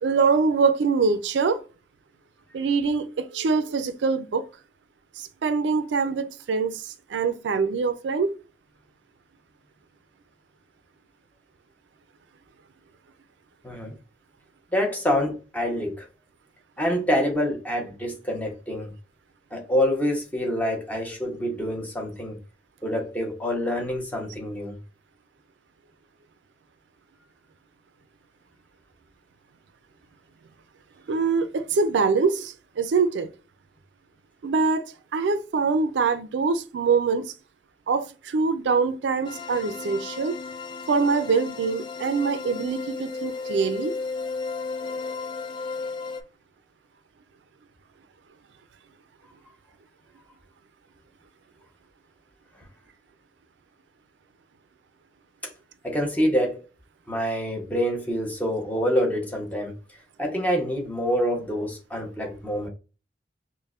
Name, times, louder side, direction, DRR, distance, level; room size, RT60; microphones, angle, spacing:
voice 1, 0.0-1.6 2.5-4.5 5.2-8.3 31.1-33.3 34.4-37.3 37.9-40.4 40.9-43.9, right 4 dB, 90° right, 0.4 m, -24 dB
voice 2, 14.7-16.1 16.8-18.9 19.5-22.4 22.8-24.8 55.4-55.5 55.8-56.6 57.1-59.7 60.2-62.7, equal, 10° left, 0.9 m, -26 dB
sound 1, 39.2-46.2, left 4 dB, 25° left, 0.3 m, -34 dB
5.2 x 2.1 x 2.4 m
head